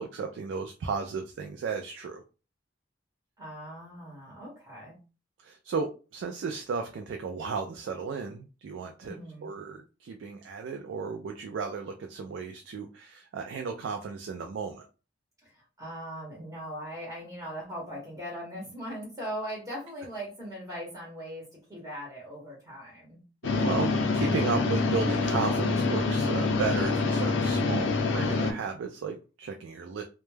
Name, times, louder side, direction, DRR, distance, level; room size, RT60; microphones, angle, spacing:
voice 1, 0.0-2.2 5.4-14.9 23.5-30.0, right 5 dB, 90° right, 4 dB, 0.3 m, -34 dB
voice 2, 3.4-5.0 9.0-9.5 15.4-23.2, equal, 15° right, -4 dB, 0.9 m, -40 dB
sound 1, 23.4-28.5, left 3 dB, 85° left, 0.5 m, -26 dB
2.2 x 2.0 x 3.1 m, 0.33 s
head